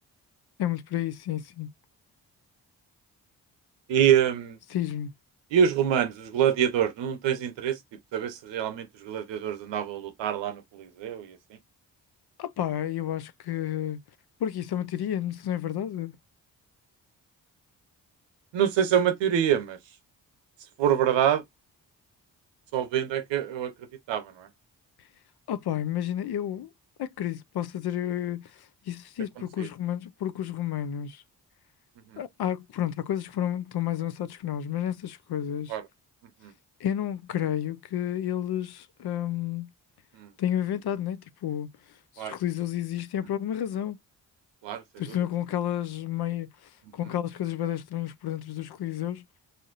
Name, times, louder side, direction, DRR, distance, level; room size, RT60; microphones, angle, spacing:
voice 1, 0.6-1.7 4.7-5.1 12.4-14.0 14.4-16.1 25.5-26.7 27.0-31.2 32.2-35.8 36.8-39.7 40.4-41.7 42.2-44.0 45.0-49.2, left 11 dB, 60° left, 0.6 m, -31 dB
voice 2, 3.9-4.6 5.5-11.6 18.5-19.8 20.8-21.4 22.7-23.7 24.1-24.5 29.6-29.7 32.1-32.2 35.7-35.8 36.2-36.5 40.1-40.3 42.2-42.4 44.6-45.2, right 9 dB, 80° right, 0.8 m, -26 dB
4.1 x 2.5 x 2.4 m
supercardioid pair, 45°, 44 cm